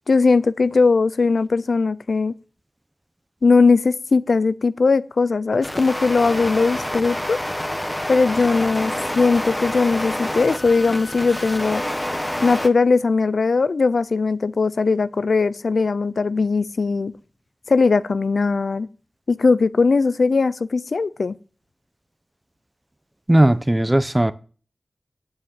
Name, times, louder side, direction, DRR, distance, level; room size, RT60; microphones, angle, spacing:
voice 1, 0.1-2.3 3.4-7.4 8.1-11.8 12.4-17.1 17.7-18.9 19.3-21.3, left 4 dB, 80° left, 0.6 m, -19 dB
sound 1, 5.6-12.7, left 1 dB, 15° left, 1.3 m, -27 dB
voice 2, 23.3-24.3, right 1 dB, 20° right, 0.9 m, -17 dB
8.8 x 7.3 x 8.9 m
cardioid pair, 45°, 0 cm